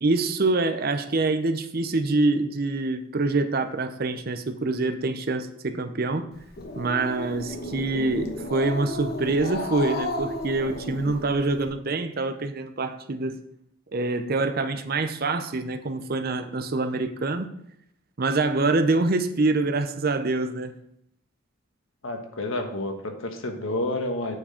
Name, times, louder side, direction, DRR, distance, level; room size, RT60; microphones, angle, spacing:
voice 1, 0.0-6.3 6.8-13.4 13.9-17.5 18.2-20.7, right 3 dB, 50° right, 0.7 m, -25 dB
Growling, 6.3-11.7, left 2 dB, 50° left, 1.1 m, -33 dB
voice 2, 22.0-24.4, left 1 dB, 80° left, 1.3 m, -29 dB
8.6 x 4.6 x 5.0 m
head